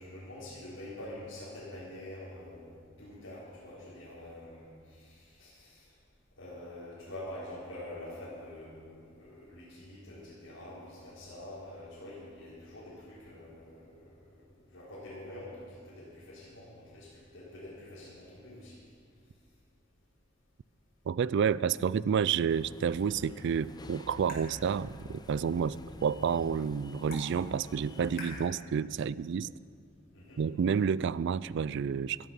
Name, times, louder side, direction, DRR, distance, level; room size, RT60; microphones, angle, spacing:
voice 1, 0.0-5.9 6.4-14.2 14.7-17.1 17.3-18.8 30.1-30.4, left 1 dB, 90° left, -10 dB, 4.5 m, -46 dB
voice 2, 21.1-29.5 30.4-32.2, right 7 dB, 60° right, 20 dB, 0.3 m, -30 dB
sound 1, 22.5-28.5, left 2 dB, 20° left, 0.6 m, -49 dB
sound 2, 23.4-29.4, left 2 dB, 50° left, 5.0 m, -51 dB
16.0 x 14.0 x 5.5 m, 2.2 s
head